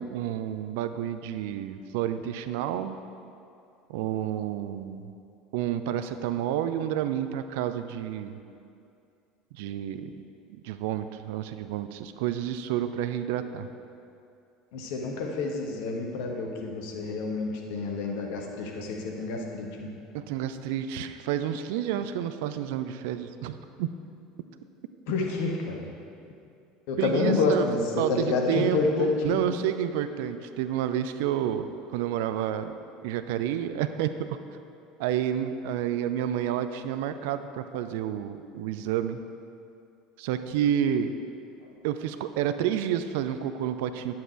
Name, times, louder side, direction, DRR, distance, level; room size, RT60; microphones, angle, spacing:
voice 1, 0.0-3.0 3.9-5.1 5.5-8.4 9.5-10.1 10.6-13.7 20.1-23.9 27.0-27.6 28.0-32.7 33.0-34.1 35.0-39.2 40.2-41.1 41.8-44.2, right 10 dB, 60° right, 10 dB, 0.4 m, -30 dB
voice 2, 14.7-19.9 25.1-25.9 26.9-29.4 41.6-41.7, left 3 dB, 60° left, 1 dB, 1.3 m, -28 dB
9.9 x 7.5 x 4.4 m, 2.5 s
figure-of-eight pair, 70°, 0 cm